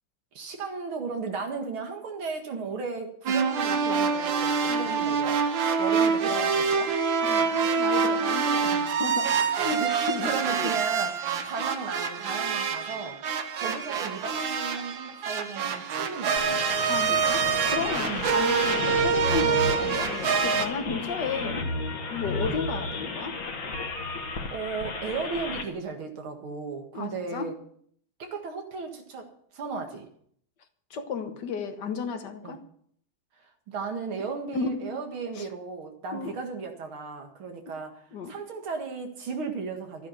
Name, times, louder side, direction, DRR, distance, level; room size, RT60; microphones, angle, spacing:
voice 1, 0.3-5.4 5.8-7.0 8.7-8.9 9.7-13.2 13.5-16.6 18.1-18.4 24.5-27.5 28.2-30.1 32.4-32.6 33.7-40.1, right 4 dB, 85° right, 2.7 m, -35 dB
sound 1, 3.3-20.7, right 6 dB, 70° right, 1.8 m, -26 dB
voice 2, 4.7-5.1 7.2-10.7 16.9-21.6 22.1-23.4 26.9-27.5 30.9-32.6 34.5-35.0 35.3-35.5 36.1-36.4 38.1-38.4, left 5 dB, 60° left, 1.7 m, -34 dB
sound 2, 16.4-25.6, left 3 dB, 45° left, 2.0 m, -33 dB
13.0 x 9.9 x 6.7 m
omnidirectional pair, 2.2 m